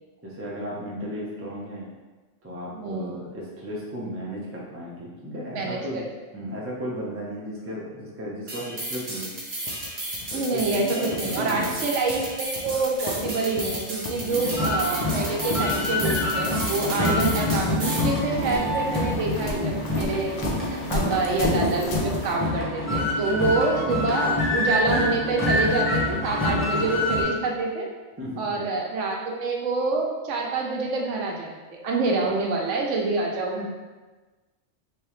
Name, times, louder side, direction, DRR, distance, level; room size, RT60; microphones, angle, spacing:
voice 1, 0.2-1.9 2.4-6.0 6.3-9.3 10.3-11.8 14.1-14.6 23.2-23.8 28.2-28.5 32.2-32.3, equal, 20° right, -5 dB, 0.4 m, -35 dB
voice 2, 2.7-3.3 5.5-6.1 10.3-20.3 20.7-27.9 28.4-31.5 31.8-33.7, right 3 dB, 80° right, 0 dB, 1.0 m, -27 dB
sound 1, 8.5-18.1, right 1 dB, 55° right, 1.1 m, -34 dB
sound 2, 9.7-22.3, left 1 dB, 80° left, 0.3 m, -34 dB
sound 3, 14.3-27.2, left 1 dB, 10° left, 0.7 m, -26 dB
3.3 x 2.8 x 3.1 m, 1.2 s
omnidirectional pair, 1.3 m